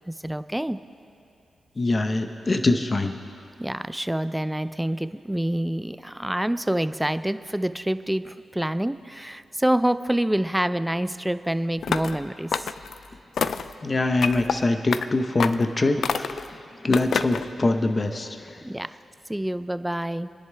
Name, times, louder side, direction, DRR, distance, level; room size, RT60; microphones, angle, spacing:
voice 1, 0.1-0.8 3.6-12.7 18.6-18.9 19.3-20.3, right 1 dB, 5° right, 12 dB, 0.4 m, -27 dB
voice 2, 1.8-3.2 13.8-18.6, left 2 dB, 35° left, 7 dB, 0.8 m, -24 dB
sound 1, 11.8-12.2 12.5-13.0 13.4-13.7 14.2-14.6 14.9-15.1 15.4-15.7 16.0-16.5 16.9-17.5, left 6 dB, 70° left, 0.4 m, -27 dB
27.0 x 10.5 x 3.4 m, 2.6 s
cardioid pair, 85°, 0 cm